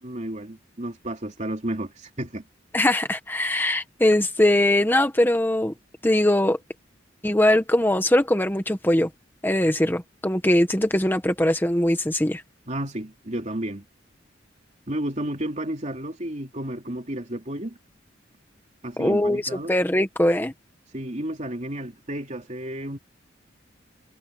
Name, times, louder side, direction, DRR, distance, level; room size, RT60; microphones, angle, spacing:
voice 1, 0.0-2.4 12.7-13.8 14.9-17.8 18.8-19.7 20.9-23.0, right 1 dB, 40° right, 3.2 m, -32 dB
voice 2, 2.7-5.7 6.0-6.6 7.2-9.1 9.4-12.4 19.0-20.5, left 1 dB, 10° left, 1.3 m, -21 dB
head